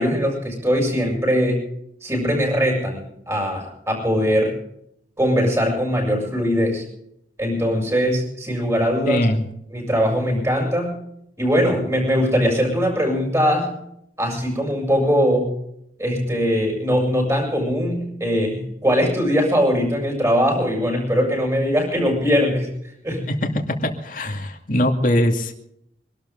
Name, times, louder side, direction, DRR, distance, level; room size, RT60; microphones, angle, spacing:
voice 1, 0.0-1.6 2.0-4.6 5.2-6.8 7.4-9.3 9.7-11.0 11.4-13.8 14.2-15.5 16.0-22.7 23.0-23.3, equal, 15° right, 1 dB, 7.1 m, -21 dB
voice 2, 9.1-9.5 23.3-25.5, left 1 dB, 45° left, 3 dB, 2.4 m, -21 dB
25.5 x 12.5 x 3.9 m, 0.73 s
head